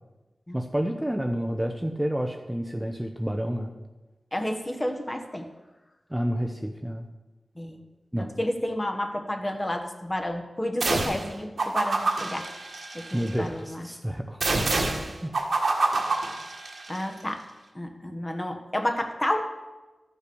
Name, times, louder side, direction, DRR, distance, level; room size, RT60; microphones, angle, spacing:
voice 1, 0.5-3.7 6.1-7.1 8.1-8.3 13.1-14.4 15.2-15.3, equal, 10° right, 4 dB, 0.8 m, -29 dB
voice 2, 4.3-5.5 7.6-7.8 8.2-12.5 12.9-13.9 16.9-17.4 17.7-19.5, left 1 dB, 25° left, 5 dB, 1.3 m, -31 dB
sound 1, 10.8-11.3 11.6-13.3 14.4-17.0, right 3 dB, 75° right, 1.5 m, -27 dB
13.0 x 5.7 x 6.2 m, 1.1 s
wide cardioid pair, 70°, 0 cm